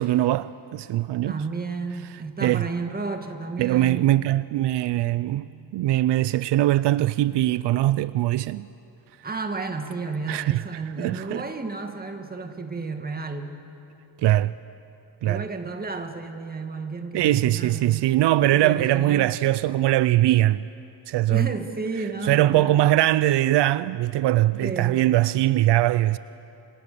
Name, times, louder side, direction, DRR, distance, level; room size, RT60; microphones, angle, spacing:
voice 1, 0.0-1.4 2.4-2.6 3.6-5.5 5.7-8.7 10.3-10.6 11.0-11.4 14.2-14.5 15.2-15.4 17.1-20.6 21.1-21.5 22.2-26.2, right 15 dB, 80° right, 0.6 m, -21 dB
voice 2, 1.3-4.1 9.2-13.5 15.2-18.1 18.5-19.4 21.3-22.9 24.6-25.0, right 3 dB, 20° right, 2.0 m, -32 dB
Keyboard (musical), 5.1-6.9, right 5 dB, 5° left, 6.8 m, -53 dB
29.5 x 27.0 x 6.9 m
cardioid pair, 145°, 42 cm